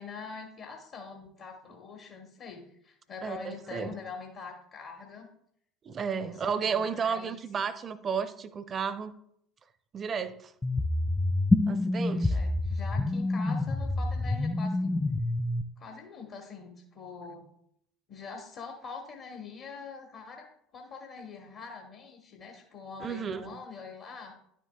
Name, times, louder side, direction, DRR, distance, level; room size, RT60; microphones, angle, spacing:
voice 1, 0.0-5.3 6.2-7.4 12.1-14.9 15.8-17.5 18.1-20.5 20.7-24.3, left 5 dB, 50° left, 2 dB, 1.2 m, -44 dB
voice 2, 3.2-4.0 5.8-9.1 9.9-10.5 11.7-12.4 23.0-23.6, right 6 dB, 35° right, 13 dB, 0.6 m, -33 dB
sound 1, 10.6-15.6, left 2 dB, 10° left, 0.3 m, -27 dB
10.5 x 7.4 x 2.3 m, 0.71 s
figure-of-eight pair, 65°, 0 cm